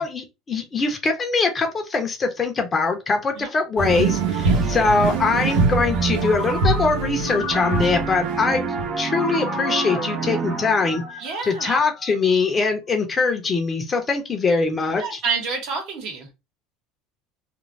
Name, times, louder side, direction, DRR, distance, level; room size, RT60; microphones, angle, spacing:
voice 1, 0.0-8.7 9.0-11.0 11.4-15.2, left 4 dB, 25° left, 0.6 m, -22 dB
sound 1, 3.8-8.9, right 4 dB, 85° right, 0.8 m, -24 dB
sound 2, 4.5-7.3 7.5-11.1, right 5 dB, 35° right, 0.5 m, -30 dB
Ringtone, 6.2-8.3 9.1-12.5, left 3 dB, 75° left, 0.8 m, -35 dB
voice 2, 11.2-11.8 14.9-16.3, right 5 dB, 60° right, 1.1 m, -29 dB
2.5 x 2.0 x 3.1 m
cardioid pair, 135°, 0 cm